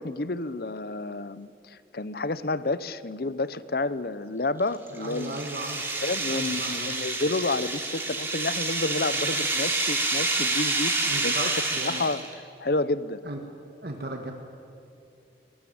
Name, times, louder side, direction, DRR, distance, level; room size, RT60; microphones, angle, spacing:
voice 1, 0.0-5.4 6.0-11.5 11.8-13.2, left 2 dB, 55° left, 16 dB, 0.8 m, -30 dB
sound 1, 4.6-12.3, right 2 dB, 10° right, 3.1 m, -28 dB
voice 2, 5.0-6.0 6.3-6.9 11.0-12.1 13.3-13.4 13.8-14.3, right 2 dB, 60° right, 3 dB, 1.7 m, -36 dB
24.0 x 20.0 x 8.8 m, 2.7 s
head